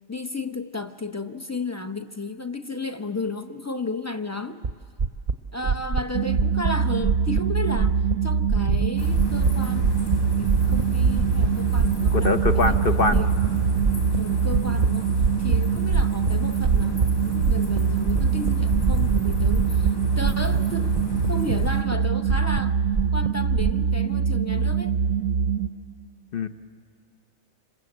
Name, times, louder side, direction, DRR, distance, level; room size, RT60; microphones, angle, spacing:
voice 1, 0.1-4.6 5.5-9.9 10.4-12.8 13.1-13.3 14.2-15.1 15.4-21.0 21.3-22.8 23.1-25.0, left 2 dB, 20° left, 8 dB, 0.5 m, -33 dB
sound 1, 4.6-4.7 5.0-5.3 5.6-6.0 6.3-6.7 7.0-7.4 7.7-8.1 8.5-8.9 9.1-9.5 9.8-10.2 10.5-11.5 11.8-12.1 12.4-12.8 13.1-13.5 13.8-14.9 15.2-15.6 15.9-16.3 16.6-17.1 17.4-17.8 18.1-19.9 20.2-20.6 20.8-22.0 22.3-23.8, right 4 dB, 40° right, 0.8 m, -24 dB
sound 2, 6.1-25.7, right 7 dB, 90° right, 1.3 m, -24 dB
sound 3, 9.0-21.8, right 1 dB, 90° left, 4.4 m, -32 dB
voice 2, 12.1-13.2 26.3-26.5, left 3 dB, 50° left, 9 dB, 0.9 m, -23 dB
27.5 x 26.5 x 7.9 m, 2.1 s
omnidirectional pair, 1.4 m